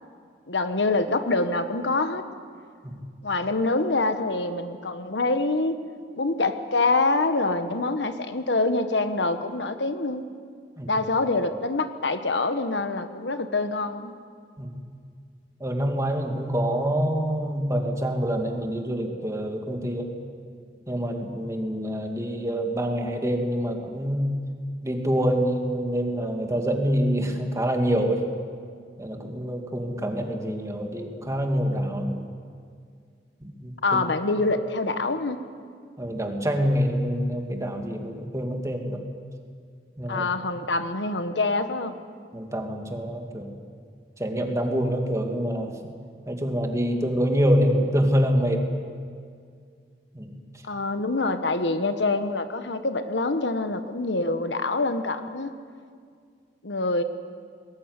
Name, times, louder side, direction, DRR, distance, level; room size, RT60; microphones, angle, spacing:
voice 1, 0.5-2.2 3.2-5.8 6.1-10.2 10.9-14.1 33.8-35.4 40.1-42.0 50.6-55.5 56.6-57.0, left 3 dB, 90° left, 9 dB, 1.3 m, -25 dB
voice 2, 15.6-20.1 20.9-24.4 24.8-28.2 29.0-32.3 33.4-34.0 36.0-39.0 40.0-40.3 42.3-43.6 44.2-45.9 46.3-48.6 50.1-50.3, equal, 20° right, 3 dB, 2.4 m, -26 dB
21.0 x 18.5 x 9.7 m, 2.1 s
head